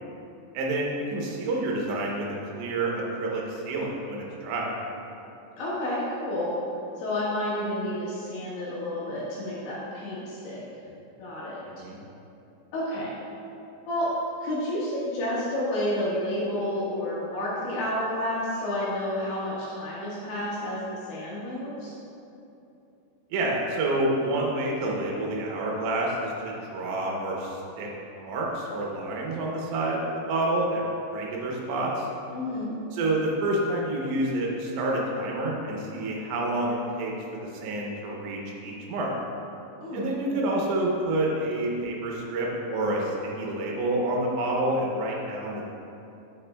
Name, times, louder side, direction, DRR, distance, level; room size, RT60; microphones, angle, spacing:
voice 1, 0.5-4.7 11.6-12.0 23.3-27.9 28.1-32.1 32.9-39.1 39.9-45.7, right 1 dB, 75° right, -2 dB, 3.0 m, -28 dB
voice 2, 5.6-6.5 7.0-10.6 11.2-11.6 12.7-13.1 13.9-14.1 14.4-21.9 32.3-32.7 39.8-40.4, left 1 dB, 70° left, -9 dB, 3.6 m, -30 dB
9.3 x 7.6 x 2.2 m, 2.8 s
omnidirectional pair, 5.8 m